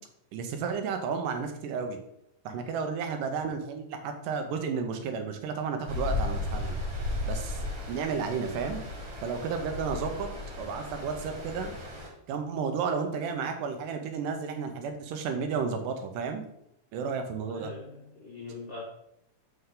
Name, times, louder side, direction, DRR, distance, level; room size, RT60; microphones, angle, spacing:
voice 1, 0.3-2.0 2.5-6.8 7.2-7.6 7.9-8.8 9.2-10.3 10.6-11.7 12.3-16.4 16.9-17.7, right 5 dB, 85° right, 6 dB, 2.4 m, -32 dB
Stream, 5.9-12.1, left 2 dB, 50° right, 2.6 m, -35 dB
voice 2, 17.5-18.8, left 3 dB, 70° left, -3 dB, 1.1 m, -42 dB
7.0 x 5.6 x 3.8 m, 0.76 s
omnidirectional pair, 3.8 m